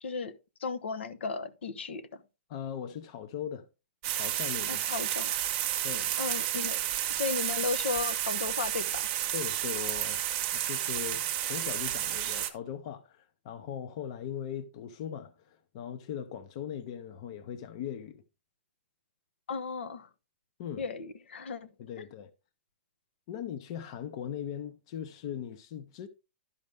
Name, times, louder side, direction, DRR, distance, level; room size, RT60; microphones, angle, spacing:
voice 1, 0.0-0.3 0.6-2.2 4.7-5.3 6.2-6.8 7.1-9.1 19.5-20.1 20.8-21.7 22.0-22.1, left 5 dB, 80° left, 1.0 m, -35 dB
voice 2, 2.5-3.7 4.1-4.8 5.8-6.1 9.3-10.2 10.5-18.2 20.6-20.8 21.8-22.3 23.3-26.1, left 9 dB, 30° left, 0.6 m, -39 dB
sound 1, 4.0-12.5, right 12 dB, 25° right, 0.8 m, -31 dB
12.5 x 5.3 x 3.4 m
hypercardioid pair, 175°, 6 cm